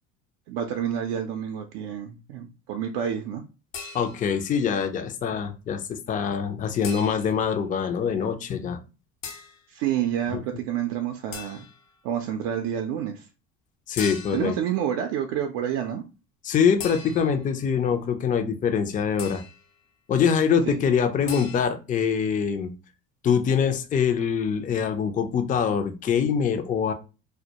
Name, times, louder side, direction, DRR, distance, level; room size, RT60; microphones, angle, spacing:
voice 1, 0.5-3.4 9.7-11.6 12.0-13.3 14.3-16.0 20.7-20.8, right 9 dB, 65° right, 0.5 m, -28 dB
sound 1, 3.7-4.4 6.8-7.5 9.2-9.6 11.3-11.9 14.0-14.6 16.8-17.5 19.2-19.7 21.3-21.6, left 6 dB, 80° left, 0.7 m, -39 dB
voice 2, 3.9-8.8 10.3-10.4 13.9-14.5 16.4-19.4 20.1-22.7 23.2-26.9, left 7 dB, 20° left, 0.4 m, -24 dB
2.1 x 2.1 x 2.8 m
hypercardioid pair, 75°, 38 cm